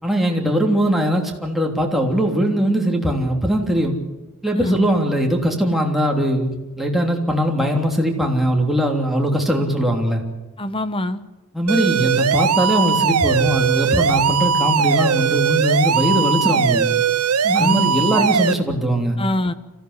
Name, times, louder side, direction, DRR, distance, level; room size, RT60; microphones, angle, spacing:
voice 1, 0.0-4.0 4.4-10.2 11.5-16.9 17.5-19.2, equal, ahead, 0 dB, 3.2 m, -20 dB
voice 2, 4.5-4.9 10.6-11.2 17.4-17.9 18.2-18.3 19.2-19.5, left 1 dB, 25° left, 13 dB, 1.1 m, -23 dB
sound 1, 11.7-18.5, right 6 dB, 80° right, 0.8 m, -19 dB
26.0 x 15.5 x 8.2 m, 1.1 s
head